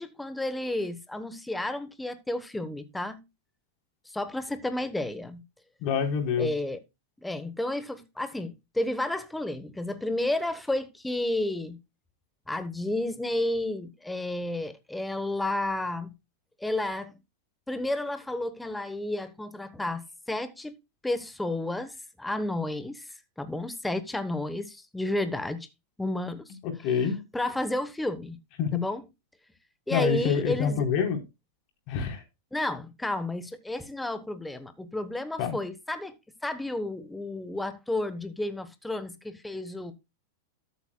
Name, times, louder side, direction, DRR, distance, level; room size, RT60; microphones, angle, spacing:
voice 1, 0.0-3.2 4.0-5.4 6.4-6.8 7.2-11.8 12.5-16.1 16.6-17.2 17.7-20.0 20.3-20.8 21.0-25.7 26.0-27.1 27.3-28.4 28.7-29.0 29.9-30.8 32.5-36.1 36.4-39.9, left 1 dB, 5° left, 1.1 m, -31 dB
voice 2, 5.8-6.5 26.8-27.2 28.6-28.8 29.9-31.2 31.9-32.2 35.4-35.5, left 7 dB, 45° left, 3.9 m, -26 dB
13.5 x 8.3 x 2.3 m
supercardioid pair, 130°, 0 cm